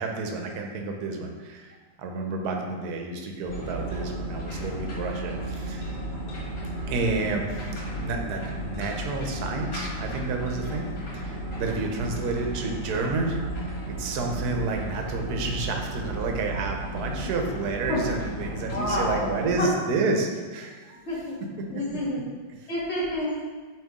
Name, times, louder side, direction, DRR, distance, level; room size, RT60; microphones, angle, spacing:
voice 1, 0.0-5.9 6.9-21.1 21.4-21.8 22.6-22.7, right 3 dB, 65° right, 2 dB, 1.2 m, -30 dB
sound 1, 3.5-19.5, right 1 dB, 65° left, 2.3 m, -34 dB
voice 2, 18.7-19.3 19.6-19.7 21.1-21.4 21.7-22.2 22.7-23.3, left 1 dB, 40° left, -5 dB, 1.5 m, -29 dB
8.7 x 3.0 x 3.6 m, 1.4 s
omnidirectional pair, 2.0 m